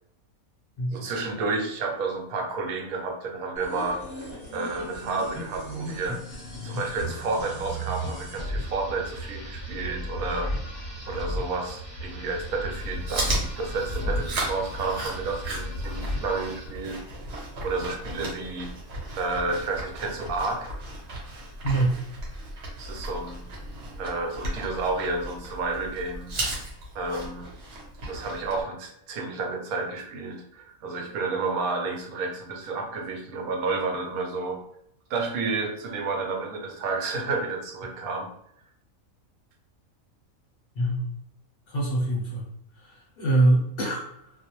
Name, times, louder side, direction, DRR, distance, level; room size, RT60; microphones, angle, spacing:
voice 1, 0.9-4.0 4.5-10.5 11.1-17.0 17.6-18.7 19.2-20.7 22.8-23.5 24.0-26.3 26.9-27.5 28.1-34.6 35.1-38.3, right 3 dB, 85° right, 3 dB, 1.0 m, -31 dB
sound 1, 3.6-16.8, equal, 20° right, 1.2 m, -35 dB
Chewing mastication, 12.7-28.6, right 1 dB, 55° right, 1.0 m, -35 dB
voice 2, 21.6-22.0 40.7-41.1 41.7-42.5 42.8-44.3, right 2 dB, 55° left, -3 dB, 0.7 m, -24 dB
2.5 x 2.0 x 2.9 m, 0.75 s
omnidirectional pair, 1.5 m